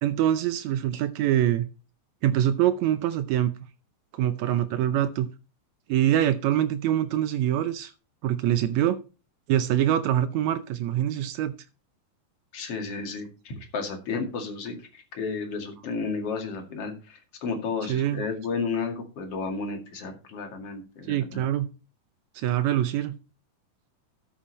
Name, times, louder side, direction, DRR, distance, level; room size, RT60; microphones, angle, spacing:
voice 1, 0.0-1.7 2.2-3.5 4.1-5.3 5.9-7.9 8.2-9.0 9.5-11.5 17.9-18.3 21.1-21.7 22.3-23.2, right 11 dB, 90° right, 12 dB, 1.6 m, -24 dB
voice 2, 12.5-21.4, left 4 dB, 45° left, 3 dB, 2.9 m, -32 dB
12.5 x 7.0 x 4.1 m, 0.31 s
omnidirectional pair, 4.1 m